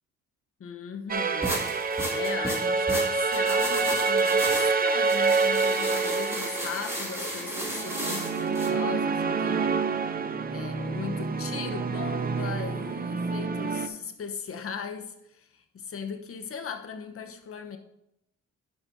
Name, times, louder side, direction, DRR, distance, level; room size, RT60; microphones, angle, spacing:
voice 1, 0.6-1.6 2.1-17.8, left 6 dB, 50° left, 5 dB, 1.0 m, -38 dB
sound 1, 1.1-13.9, right 4 dB, 30° right, 0.6 m, -27 dB
sound 2, 1.4-8.7, right 1 dB, 10° right, 2.3 m, -34 dB
11.0 x 6.3 x 2.7 m, 0.82 s
cardioid pair, 90°, 30 cm